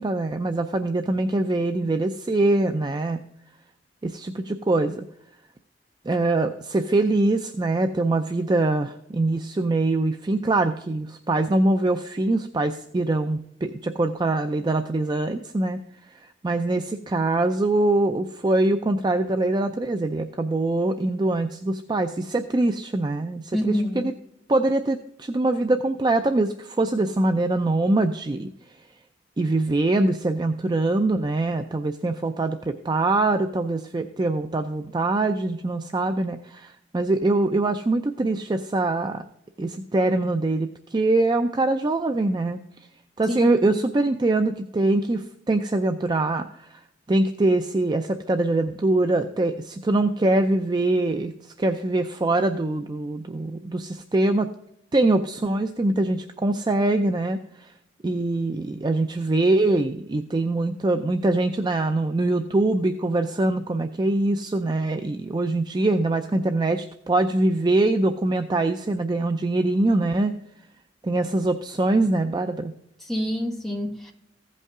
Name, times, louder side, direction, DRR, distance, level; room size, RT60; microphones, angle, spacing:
voice 1, 0.0-3.2 4.0-5.0 6.1-15.8 16.1-24.1 24.5-28.5 29.4-39.2 39.6-42.6 43.2-46.8 47.1-54.5 54.9-57.7 58.0-70.3 71.0-72.7, right 2 dB, 25° right, 0.4 m, -23 dB
voice 2, 23.5-24.1 43.3-43.4 73.0-74.1, left 1 dB, ahead, 1.8 m, -27 dB
15.5 x 5.4 x 3.6 m
head